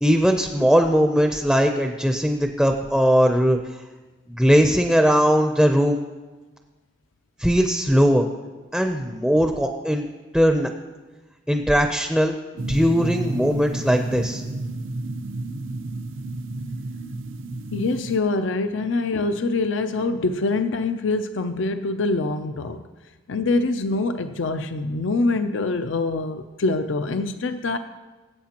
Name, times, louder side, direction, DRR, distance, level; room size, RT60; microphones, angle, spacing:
voice 1, 0.0-3.6 4.3-6.0 7.4-8.3 8.7-10.1 10.3-10.7 11.5-12.3 12.7-14.4, equal, ahead, 4 dB, 0.5 m, -19 dB
sound 1, 12.6-18.2, right 2 dB, 80° right, 0.6 m, -31 dB
voice 2, 17.7-22.8 23.3-27.8, left 3 dB, 70° left, 9 dB, 0.5 m, -24 dB
20.5 x 8.3 x 2.9 m, 1.2 s
head